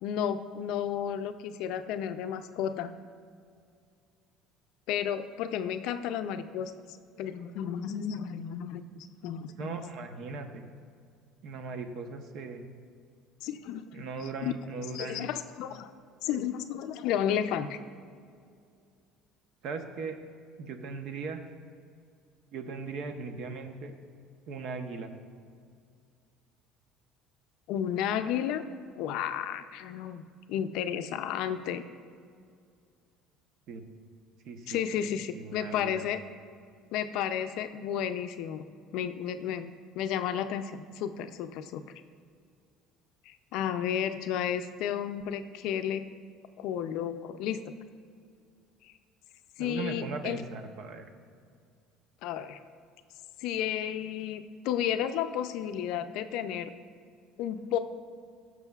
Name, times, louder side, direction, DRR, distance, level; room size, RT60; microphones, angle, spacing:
voice 1, 0.0-2.9 4.9-6.7 7.2-9.7 13.4-13.9 14.4-14.5 14.9-15.9 16.2-17.8 27.7-28.6 29.0-30.2 30.5-31.8 34.7-36.2 36.9-38.6 38.9-41.8 43.3-46.1 46.6-47.7 49.6-50.4 52.2-52.6 53.4-56.7 57.4-57.8, left 9 dB, 70° left, 10 dB, 0.4 m, -32 dB
voice 2, 9.6-10.6 11.4-12.7 13.9-15.3 19.6-20.2 20.6-21.4 22.5-23.9 24.5-25.1 33.7-33.8 34.4-35.1 35.3-36.0 49.6-51.1, right 4 dB, 60° right, 6 dB, 0.8 m, -38 dB
18.5 x 6.2 x 2.4 m, 2.2 s
cardioid pair, 130°, 0 cm